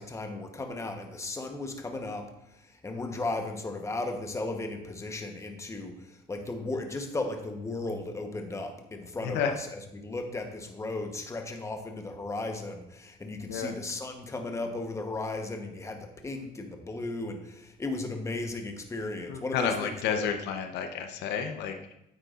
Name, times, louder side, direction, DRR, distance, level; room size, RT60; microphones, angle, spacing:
voice 1, 0.0-20.3, left 2 dB, 15° left, 4 dB, 1.0 m, -36 dB
voice 2, 9.2-9.5 13.5-13.7 19.3-21.9, left 7 dB, 85° left, 6 dB, 0.8 m, -31 dB
9.5 x 8.3 x 2.5 m, 0.82 s
cardioid pair, 110°, 17 cm